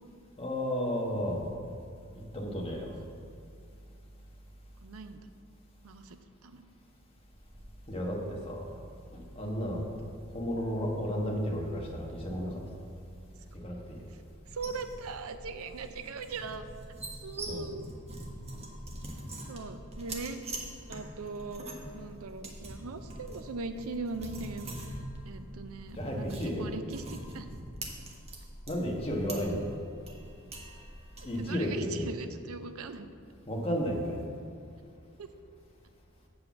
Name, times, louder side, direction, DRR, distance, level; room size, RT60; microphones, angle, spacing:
voice 1, 0.4-1.5 2.3-3.0 7.9-8.7 9.1-9.9 10.3-12.7 13.5-14.0 17.5-17.7 25.9-26.7 28.7-29.7 31.2-32.1 33.5-34.2, equal, 25° left, -1 dB, 1.3 m, -33 dB
voice 2, 4.8-5.2 5.8-6.2 6.4-6.6 14.5-16.7 17.2-18.0 19.5-20.5 20.9-21.7 21.9-24.9 25.2-27.5 31.2-33.1 35.2-35.3, right 4 dB, 75° right, 9 dB, 0.6 m, -40 dB
sound 1, 14.4-31.4, right 1 dB, 30° right, 1.1 m, -44 dB
7.7 x 4.8 x 7.1 m, 2.3 s
head